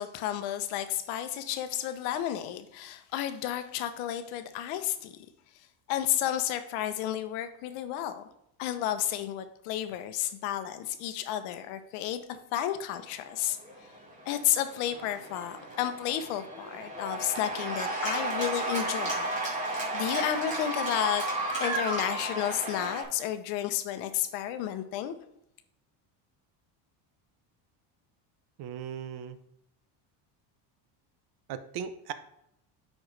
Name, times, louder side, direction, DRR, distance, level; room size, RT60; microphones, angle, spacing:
voice 1, 0.0-5.1 5.9-8.2 8.6-13.6 14.3-19.3 19.6-21.2 21.6-25.1, left 11 dB, 80° left, 10 dB, 0.9 m, -32 dB
Cheering / Applause, 13.4-23.0, right 2 dB, 15° right, 2.6 m, -33 dB
voice 2, 28.6-29.4 31.5-32.1, right 8 dB, 50° right, 11 dB, 0.7 m, -37 dB
9.8 x 4.3 x 3.2 m, 0.78 s
supercardioid pair, 115°, 49 cm